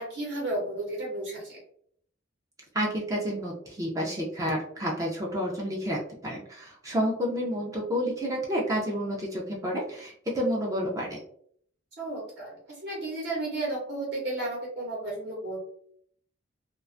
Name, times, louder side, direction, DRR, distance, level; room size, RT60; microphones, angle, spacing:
voice 1, 0.0-1.6 12.0-15.6, right 2 dB, 60° right, -4 dB, 0.8 m, -33 dB
voice 2, 2.7-11.2, equal, 15° right, -3 dB, 0.4 m, -30 dB
2.4 x 2.2 x 2.5 m, 0.62 s
head